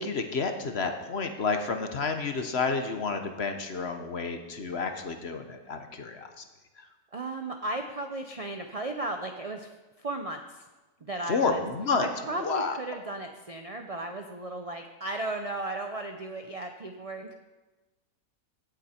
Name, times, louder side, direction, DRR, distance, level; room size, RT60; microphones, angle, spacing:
voice 1, 0.0-6.4 11.3-12.1 12.3-12.7, left 4 dB, 50° left, 6 dB, 1.1 m, -30 dB
voice 2, 7.1-9.7 10.0-10.6 11.0-11.7 12.0-17.3, right 2 dB, 40° right, 4 dB, 0.5 m, -35 dB
16.5 x 7.9 x 4.4 m, 1.2 s
omnidirectional pair, 1.5 m